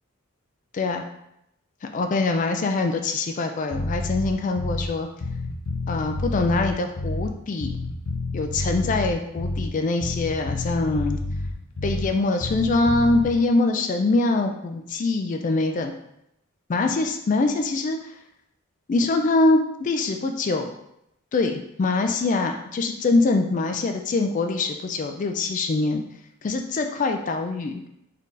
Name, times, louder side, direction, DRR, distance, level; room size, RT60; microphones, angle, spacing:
voice 1, 1.9-5.1 5.9-7.8 8.3-11.2 11.8-15.9 16.7-18.0 18.9-20.7 21.3-26.0 26.4-27.8, left 3 dB, 35° left, 5 dB, 0.3 m, -23 dB
Bass guitar, 3.7-5.0 5.2-7.4 7.6-9.8 10.0-12.2 12.4-13.3, left 2 dB, 80° left, 0.6 m, -29 dB
4.2 x 2.8 x 3.2 m, 0.80 s
head